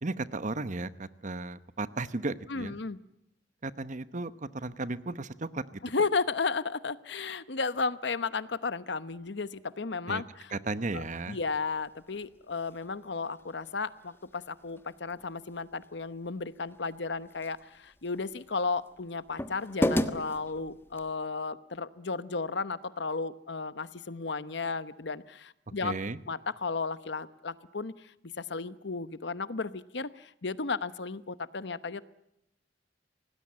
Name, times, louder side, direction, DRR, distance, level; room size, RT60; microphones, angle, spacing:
voice 1, 0.0-2.8 3.6-5.8 10.1-10.2 10.5-11.4 25.8-26.2, right 3 dB, 45° right, 14 dB, 1.0 m, -35 dB
voice 2, 2.5-3.0 5.8-10.5 10.9-26.0 26.3-32.0, left 4 dB, 65° left, 15 dB, 1.0 m, -34 dB
sound 1, 10.8-21.1, left 1 dB, 15° left, 1.3 m, -38 dB
26.0 x 19.0 x 8.7 m, 0.82 s
head